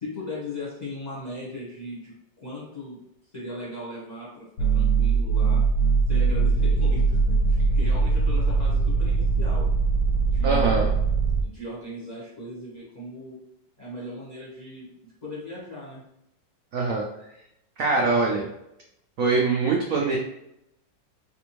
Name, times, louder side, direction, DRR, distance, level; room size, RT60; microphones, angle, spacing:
voice 1, 0.0-2.1 2.4-3.0 3.3-4.4 4.7-5.6 6.1-9.6 10.3-11.0 11.4-13.4 13.8-14.9 15.2-16.0, left 1 dB, 30° left, -8 dB, 0.9 m, -37 dB
sound 1, 4.6-11.4, right 4 dB, 90° left, 1.3 m, -21 dB
voice 2, 10.4-10.9 16.7-17.1 17.8-18.5 19.2-20.2, right 3 dB, 85° right, -1 dB, 0.7 m, -23 dB
3.4 x 2.6 x 2.9 m, 0.80 s
omnidirectional pair, 2.0 m